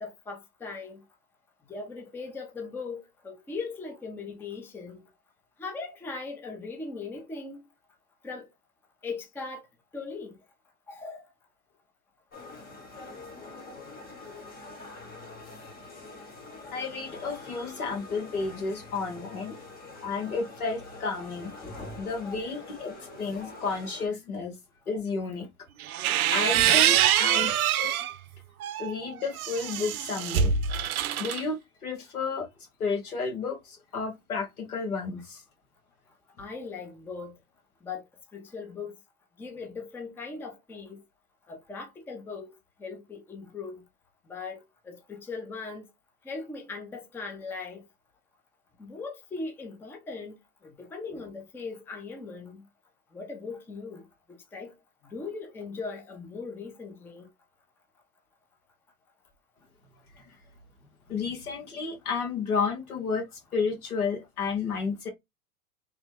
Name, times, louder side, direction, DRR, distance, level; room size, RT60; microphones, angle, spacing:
voice 1, 0.0-1.0 1.7-5.1 5.6-7.6 8.2-8.5 9.0-9.6 9.9-10.4 10.9-11.2 21.6-22.0 26.0-26.1 26.5-27.0 36.4-37.4 37.8-38.0 38.3-39.0 39.4-41.0 41.5-43.8 44.3-45.9 46.2-47.8 48.8-50.4 50.6-52.6 53.1-54.7 55.0-57.3, left 4 dB, 5° left, 0.5 m, -39 dB
sound 1, 12.3-24.1, left 3 dB, 20° left, 1.0 m, -45 dB
voice 2, 16.7-19.6 20.0-21.6 22.0-24.5 24.9-25.5 26.3-27.9 28.8-30.5 31.2-32.5 32.8-35.4 60.1-60.3 61.1-65.1, left 4 dB, 85° left, 1.4 m, -32 dB
sound 2, 25.8-28.1 28.6-31.4, right 10 dB, 85° right, 0.5 m, -25 dB
3.1 x 2.2 x 3.1 m
hypercardioid pair, 110°, 42 cm